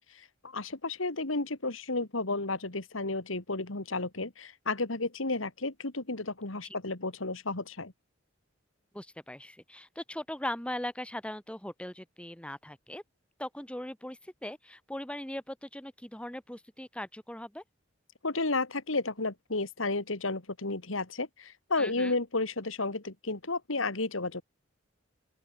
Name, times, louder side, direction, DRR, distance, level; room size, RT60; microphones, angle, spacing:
voice 1, 0.1-7.9 18.2-24.4, left 3 dB, 85° left, 2.6 m, -32 dB
voice 2, 8.9-13.0 13.4-17.6 21.8-22.2, left 1 dB, 5° left, 2.0 m, -39 dB
open air
head